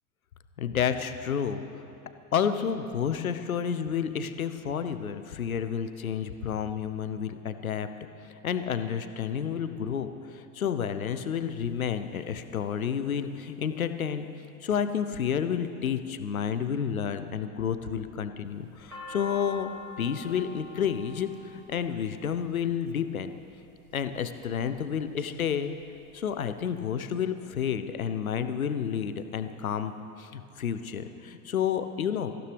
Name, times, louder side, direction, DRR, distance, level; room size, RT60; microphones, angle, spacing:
voice 1, 0.6-1.6 2.3-7.9 8.4-14.3 14.6-19.7 20.0-23.3 23.9-25.7 26.1-29.9 30.2-32.3, left 8 dB, 70° left, 10 dB, 1.0 m, -30 dB
sound 1, 18.5-22.7 23.5-24.0 24.6-25.3 25.6-25.7 25.9-26.7, left 3 dB, 75° right, 3.4 m, -44 dB
24.5 x 15.5 x 3.4 m, 2.7 s
figure-of-eight pair, 90°, 43 cm